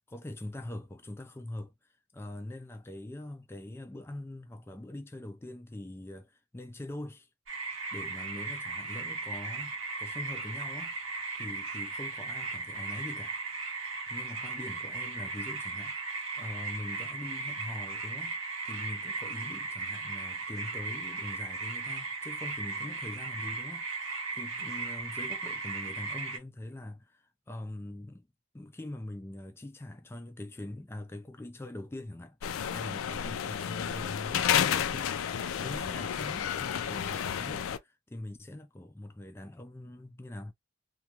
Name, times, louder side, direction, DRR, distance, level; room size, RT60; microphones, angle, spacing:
voice 1, 0.1-1.7 2.1-7.3 7.9-10.9 11.3-13.4 14.1-18.3 18.6-23.9 24.3-28.3 28.5-32.4 32.7-35.2 35.6-40.5, left 1 dB, 10° left, 0.3 m, -43 dB
sound 1, 7.5-26.4, right 3 dB, 90° right, 1.0 m, -37 dB
sound 2, 32.4-37.8, left 9 dB, 85° left, 0.4 m, -31 dB
2.4 x 2.2 x 2.8 m
head